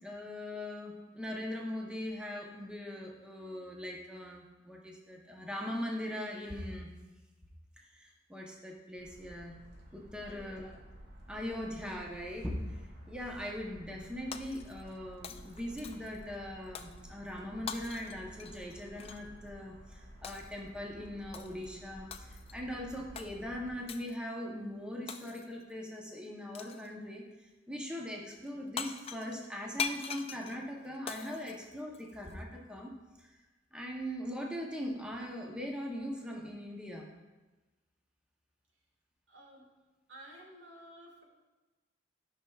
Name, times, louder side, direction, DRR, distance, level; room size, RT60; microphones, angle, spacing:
voice 1, 0.0-6.9 7.8-9.5 9.9-10.7 11.3-27.2 27.7-32.9 33.2-33.4 33.7-37.1, left 1 dB, 5° right, -1 dB, 0.7 m, -40 dB
sound 1, 9.0-23.9, equal, 60° right, 1.6 m, -53 dB
voice 2, 10.2-10.8 39.3-39.6 40.1-41.2, right 1 dB, 80° right, -1 dB, 1.6 m, -53 dB
Shatter, 14.3-15.0 15.2-16.2 16.8-17.0 17.7-19.3 20.2-20.6 21.3-21.7 22.1-22.6 23.2-23.3 23.9-24.2 25.1-25.6 26.5-26.9 28.5-28.6 28.8-32.3, left 7 dB, 30° left, 0.3 m, -42 dB
11.5 x 5.6 x 2.3 m, 1.2 s
head